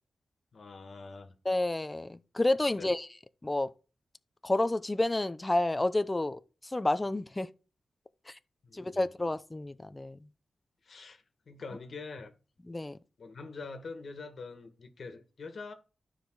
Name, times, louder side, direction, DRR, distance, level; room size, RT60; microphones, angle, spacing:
voice 1, 0.5-1.3 2.8-2.9 8.6-9.1 10.8-12.3 13.2-15.7, left 4 dB, 65° left, 1.7 m, -44 dB
voice 2, 1.4-3.1 3.4-3.7 4.4-6.4 6.7-7.5 8.7-10.2 12.7-13.0, left 2 dB, 20° left, 0.6 m, -29 dB
12.5 x 5.0 x 4.8 m
wide cardioid pair, 85°, 0 cm